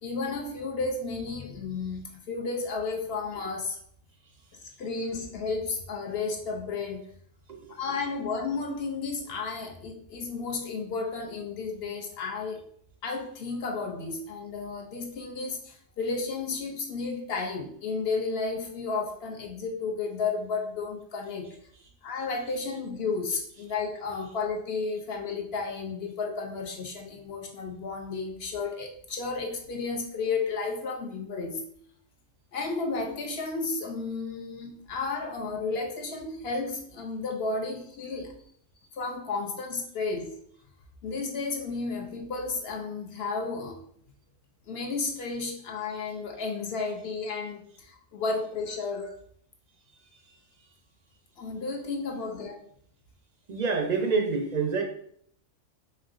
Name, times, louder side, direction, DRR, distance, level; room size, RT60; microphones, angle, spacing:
voice 1, 0.0-3.8 4.8-7.1 7.8-12.6 13.0-21.6 22.0-31.6 32.5-38.4 38.9-40.4 41.0-43.8 44.7-49.2 51.4-52.6, left 4 dB, 60° left, 1 dB, 0.8 m, -32 dB
voice 2, 53.5-54.8, right 4 dB, 55° right, 4 dB, 0.5 m, -27 dB
4.4 x 3.7 x 2.4 m, 0.64 s
omnidirectional pair, 1.3 m